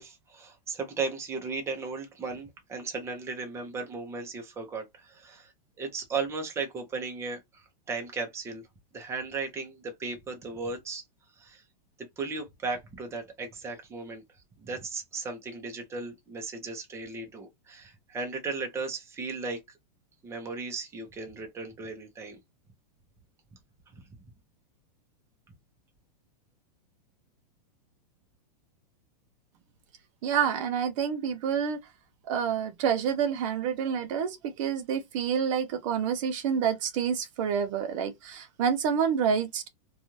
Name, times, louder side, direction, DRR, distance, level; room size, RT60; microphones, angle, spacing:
voice 1, 0.0-5.5 5.8-8.6 8.9-11.0 11.4-11.6 12.0-14.2 14.6-19.6 20.2-22.4, right 4 dB, 15° right, 0.6 m, -36 dB
voice 2, 30.2-31.8 32.2-39.7, right 7 dB, 50° right, 0.5 m, -28 dB
2.5 x 2.3 x 3.0 m
supercardioid pair, 150°, 21 cm